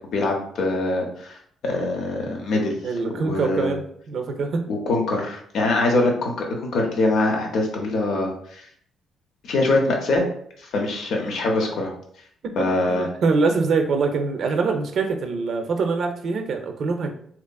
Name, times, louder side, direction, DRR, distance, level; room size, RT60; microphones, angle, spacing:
voice 1, 0.1-1.4 1.6-2.8 3.1-3.7 4.7-8.7 9.4-10.2 10.6-11.9 12.6-13.1, left 2 dB, 70° left, 1 dB, 0.6 m, -23 dB
voice 2, 2.8-4.6 12.6-17.1, right 4 dB, 60° right, 5 dB, 0.4 m, -24 dB
2.8 x 2.5 x 2.2 m, 0.64 s
cardioid pair, 95°, 0 cm